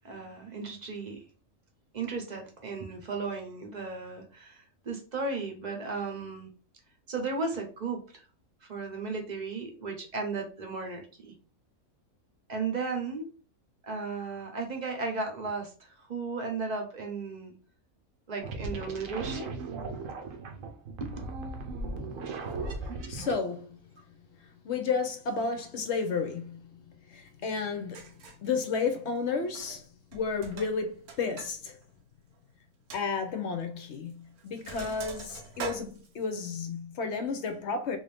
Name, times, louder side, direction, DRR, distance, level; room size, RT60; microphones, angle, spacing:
voice 1, 0.0-1.2 1.9-6.5 7.1-8.2 8.7-11.3 12.5-13.3 13.8-17.6 18.3-19.5 20.5-20.7 21.0-21.1, right 4 dB, 35° right, 0.8 m, -35 dB
sound 1, 18.4-23.4, right 3 dB, 65° right, 1.1 m, -37 dB
voice 2, 22.8-23.8 24.6-26.8 27.1-28.1 28.4-29.9 30.1-31.8 32.9-38.0, left 5 dB, 60° left, 0.8 m, -32 dB
Sink (filling or washing), 27.6-27.7 27.9-28.5 29.4-29.9 30.1-31.5 31.8-31.9 32.3-32.4 32.9-33.0 33.9-34.1 34.4-36.5, right 5 dB, 90° right, 1.3 m, -42 dB
3.5 x 2.6 x 3.4 m
omnidirectional pair, 1.5 m